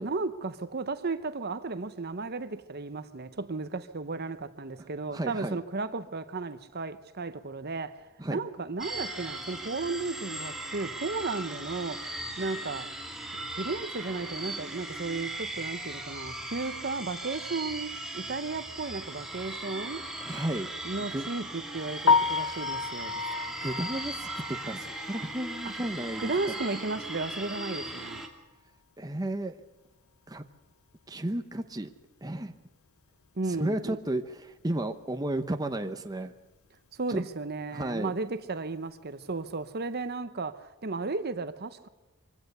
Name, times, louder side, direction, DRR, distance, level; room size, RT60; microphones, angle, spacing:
voice 1, 0.0-8.0 8.3-12.1 12.4-12.9 13.4-20.1 20.8-23.2 25.6-25.7 26.2-28.3 33.4-34.0 36.9-41.9, right 3 dB, 45° right, 0.9 m, -34 dB
voice 2, 4.8-5.6 8.2-8.4 20.2-20.7 21.0-21.3 23.6-26.3 29.0-29.5 30.3-30.4 31.1-31.9 32.2-32.5 33.6-36.3 37.1-37.2 37.7-38.1, right 1 dB, 15° right, 0.9 m, -33 dB
sound 1, 8.8-28.3, right 1 dB, ahead, 2.3 m, -38 dB
Piano, 22.0-26.0 26.4-26.5 27.0-27.1 27.4-27.5 30.6-30.7 39.2-39.5, left 4 dB, 70° left, 0.6 m, -30 dB
24.0 x 16.5 x 6.7 m
head